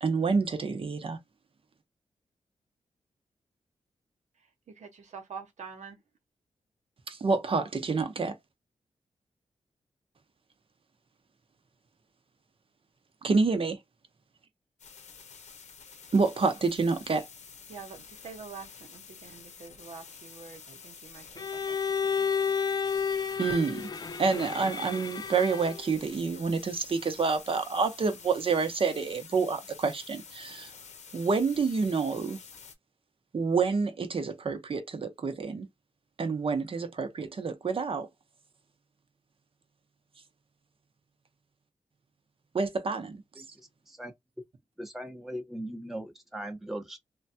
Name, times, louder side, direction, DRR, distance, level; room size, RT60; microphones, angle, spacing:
voice 1, 0.0-1.2 7.1-8.4 13.2-13.8 16.1-17.3 23.4-23.9 24.2-30.7 31.1-32.4 33.3-35.7 36.2-38.1 42.5-43.2, right 4 dB, 50° right, 0.8 m, -28 dB
voice 2, 4.4-6.0 17.7-21.8 22.2-22.3, right 5 dB, 80° right, 1.0 m, -46 dB
sound 1, 14.8-32.7, left 6 dB, 80° left, 0.8 m, -49 dB
Bowed string instrument, 21.4-25.9, left 6 dB, 35° left, 0.4 m, -31 dB
voice 3, 43.4-44.1 44.8-47.0, right 1 dB, 5° right, 0.8 m, -39 dB
3.2 x 2.2 x 2.7 m
cardioid pair, 75°, 12 cm